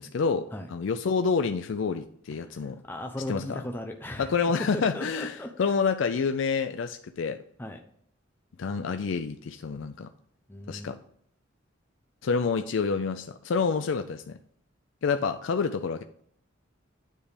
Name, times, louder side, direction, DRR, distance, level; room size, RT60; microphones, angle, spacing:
voice 1, 0.0-2.8 3.3-3.6 4.3-7.4 8.6-10.1 10.7-11.0 12.2-14.4 15.0-16.0, left 5 dB, 65° left, 8 dB, 0.4 m, -28 dB
voice 2, 2.4-4.3 4.6-5.7 7.6-7.8 10.5-11.0, left 1 dB, 10° left, 3 dB, 0.5 m, -37 dB
9.5 x 3.4 x 5.0 m, 0.64 s
head